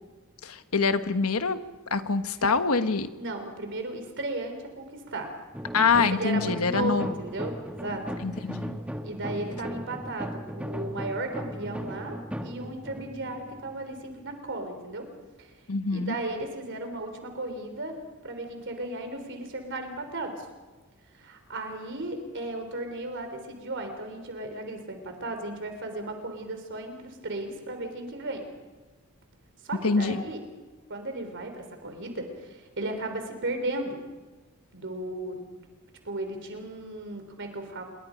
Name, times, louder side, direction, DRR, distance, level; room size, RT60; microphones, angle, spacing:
voice 1, 0.4-1.6 1.9-3.1 5.7-7.1 8.2-8.8 15.7-16.1 29.8-30.2, left 4 dB, 90° left, 9 dB, 1.3 m, -25 dB
voice 2, 3.1-5.3 6.1-8.0 9.0-12.2 12.4-15.1 15.4-15.5 15.9-18.0 18.2-20.5 21.1-28.5 29.6-30.4 30.9-34.0 34.7-35.4 36.0-37.8, right 2 dB, 60° right, 6 dB, 3.7 m, -35 dB
sound 1, 5.5-14.3, equal, 5° right, 1.2 m, -37 dB
27.5 x 22.5 x 5.2 m, 1.2 s
head